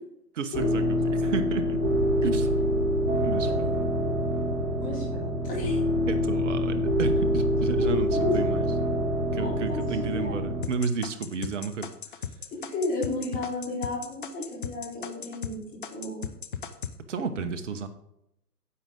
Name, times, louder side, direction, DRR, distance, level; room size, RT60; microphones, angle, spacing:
voice 1, 0.4-1.8 2.2-2.5 3.2-3.7 6.1-8.7 9.3-11.9 17.1-17.9, right 5 dB, 50° right, 9 dB, 1.2 m, -32 dB
sound 1, 0.5-10.6, equal, 30° right, 2.3 m, -26 dB
voice 2, 3.4-3.8 4.8-5.8 7.7-8.6 9.3-10.4 12.7-16.2, left 2 dB, 15° left, -5 dB, 3.6 m, -33 dB
sound 2, 10.6-15.5 15.8-16.9, left 7 dB, 35° left, 0.5 m, -36 dB
10.0 x 7.4 x 3.8 m, 0.80 s
figure-of-eight pair, 140°, 49 cm